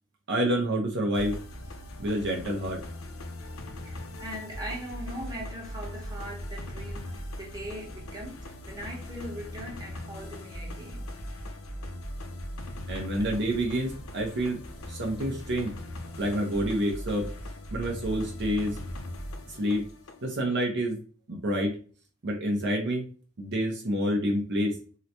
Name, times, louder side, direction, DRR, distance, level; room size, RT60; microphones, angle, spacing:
voice 1, 0.3-1.4 2.0-2.8 12.9-14.6 14.9-15.7 16.2-17.3 17.7-18.8 19.5-19.9 20.2-21.0 21.3-21.8 22.2-23.1 23.4-24.8, equal, 55° right, 0.7 m, -28 dB
sound 1, 1.1-20.3, left 1 dB, 80° left, 0.7 m, -39 dB
voice 2, 3.8-11.0 13.2-13.3, equal, 20° right, 1.1 m, -40 dB
3.8 x 2.1 x 2.8 m
head